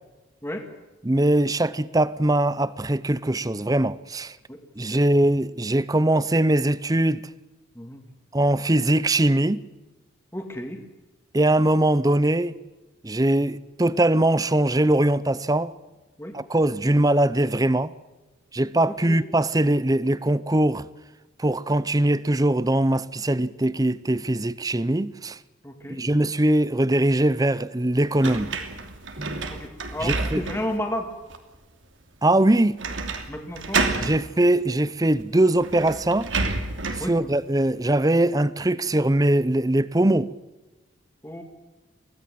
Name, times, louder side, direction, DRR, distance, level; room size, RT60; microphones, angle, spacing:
voice 1, 1.0-4.4 4.8-7.3 8.3-9.6 11.3-12.5 13.0-15.7 16.3-17.9 18.5-20.9 21.4-25.4 25.9-28.6 29.2-29.5 30.0-30.4 32.2-32.8 34.0-36.3 37.0-40.3, right 1 dB, 20° right, 0.6 m, -21 dB
voice 2, 4.5-5.0 7.8-8.0 10.3-10.8 16.2-16.3 19.1-19.2 25.6-26.0 29.5-31.1 33.3-33.9 37.0-37.1 41.2-41.4, left 1 dB, 10° left, 2.2 m, -32 dB
sound 1, 28.2-30.8 31.3-31.4 32.8-33.3 33.5-34.2 35.2-35.3 35.6-37.1, right 3 dB, 70° right, 2.7 m, -29 dB
24.5 x 17.0 x 7.7 m
head